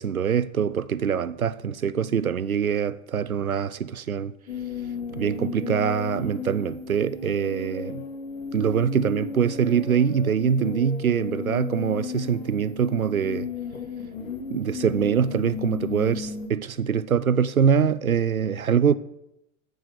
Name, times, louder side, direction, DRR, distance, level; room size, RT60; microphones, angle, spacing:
voice 1, 0.0-4.3 5.1-8.0 8.5-13.5 14.5-19.0, right 7 dB, 85° right, 0.7 m, -24 dB
sound 1, 4.5-16.5, left 6 dB, 60° left, 2.6 m, -34 dB
13.0 x 7.7 x 6.8 m
figure-of-eight pair, 95°, 41 cm